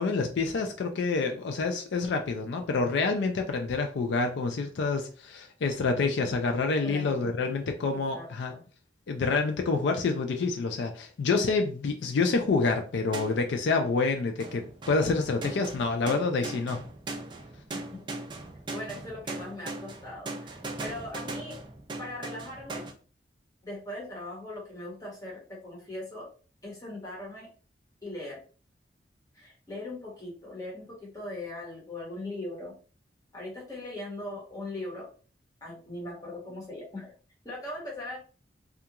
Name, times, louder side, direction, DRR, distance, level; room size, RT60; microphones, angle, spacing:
voice 1, 0.0-8.5 9.1-16.8, left 4 dB, 75° left, 4 dB, 0.4 m, -27 dB
voice 2, 6.8-7.5 8.1-8.6 17.7-18.0 18.7-21.6 22.0-22.8 23.6-26.3 26.6-27.5 28.0-28.4 29.3-32.7 33.3-35.1 35.6-37.1 37.4-38.2, left 1 dB, 20° left, -4 dB, 1.0 m, -40 dB
sound 1, 13.1-13.7 14.4-22.9, right 2 dB, 25° right, 0.3 m, -39 dB
2.4 x 2.2 x 2.8 m, 0.39 s
head